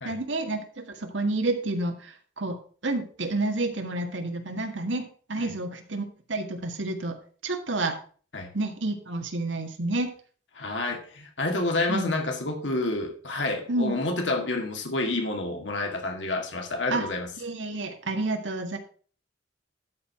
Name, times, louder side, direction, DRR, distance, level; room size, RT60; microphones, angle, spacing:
voice 1, 0.0-2.6 2.8-7.2 7.4-8.0 8.5-10.1 11.9-12.1 13.7-13.9 16.9-17.0 17.4-18.8, right 2 dB, 85° right, 5 dB, 1.8 m, -29 dB
voice 2, 10.6-17.3, left 2 dB, 75° left, 3 dB, 2.2 m, -29 dB
12.5 x 4.8 x 5.8 m, 0.43 s
head